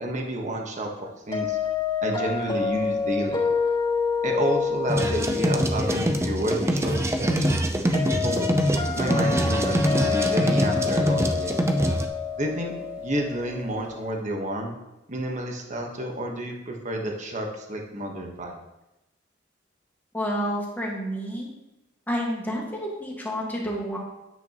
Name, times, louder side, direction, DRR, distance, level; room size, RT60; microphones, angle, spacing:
voice 1, 0.0-1.6 2.0-3.4 4.2-7.7 8.2-8.5 8.9-11.6 12.4-14.7 15.1-18.6, right 1 dB, 40° right, 2 dB, 1.3 m, -30 dB
sound 1, 1.3-14.2, left 5 dB, 25° left, 3.4 m, -28 dB
sound 2, 4.9-12.1, right 1 dB, 15° right, 0.6 m, -24 dB
voice 2, 20.1-21.5 22.1-24.0, equal, 10° left, -3 dB, 1.8 m, -29 dB
9.3 x 8.1 x 3.0 m, 0.97 s
head